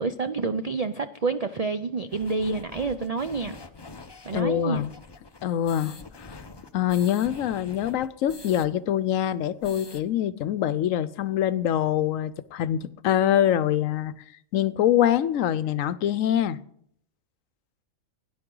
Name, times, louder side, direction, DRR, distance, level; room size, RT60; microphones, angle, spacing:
voice 1, 0.0-3.6 4.2-4.9, right 4 dB, 65° right, 0.3 m, -28 dB
sound 1, 2.1-8.7 9.0-9.1 9.4-10.0, left 3 dB, 25° left, 0.7 m, -45 dB
voice 2, 4.3-4.9 5.4-6.4 6.7-14.1 14.5-16.6, left 11 dB, 80° left, 1.0 m, -24 dB
17.0 x 10.5 x 3.8 m
omnidirectional pair, 1.4 m